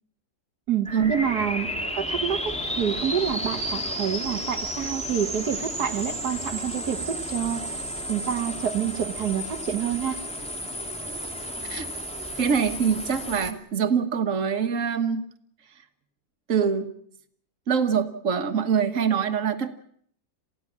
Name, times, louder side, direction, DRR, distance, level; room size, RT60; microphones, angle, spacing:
voice 1, 0.7-1.7 2.0-7.6 8.1-10.2, right 8 dB, 85° right, 6 dB, 1.7 m, -28 dB
sound 1, 0.8-13.5, equal, 5° left, 2.5 m, -32 dB
voice 2, 12.4-15.2 16.5-16.9 17.7-19.7, right 6 dB, 55° right, 7 dB, 1.7 m, -24 dB
28.0 x 16.0 x 7.3 m, 0.66 s
omnidirectional pair, 1.6 m